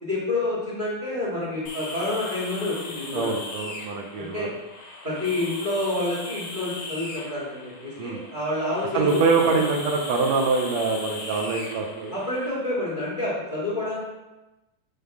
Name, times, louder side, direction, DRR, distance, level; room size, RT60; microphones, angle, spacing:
voice 1, 0.0-3.3 4.1-4.5 5.0-9.6 12.1-14.0, left 2 dB, 20° right, -8 dB, 1.7 m, -28 dB
sound 1, 1.7-12.5, left 2 dB, 70° left, 1.0 m, -38 dB
voice 2, 3.1-4.5 8.0-8.2 8.9-12.1, right 4 dB, 75° right, 1 dB, 1.7 m, -24 dB
7.7 x 3.8 x 3.4 m, 1.0 s
omnidirectional pair, 3.5 m